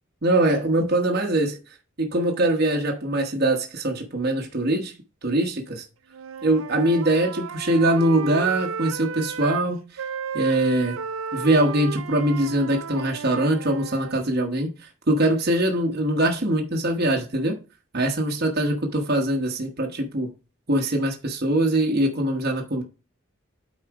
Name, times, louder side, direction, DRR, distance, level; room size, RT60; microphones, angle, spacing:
voice 1, 0.2-1.6 2.0-4.9 5.2-5.8 6.4-10.0 10.3-11.0 11.3-17.6 17.9-20.3 20.7-22.8, right 1 dB, 45° right, 1.2 m, -22 dB
Wind instrument woodwind instrument, 6.1-9.7 10.0-14.2, right 6 dB, 75° right, 0.5 m, -34 dB
8.7 x 4.3 x 4.8 m
head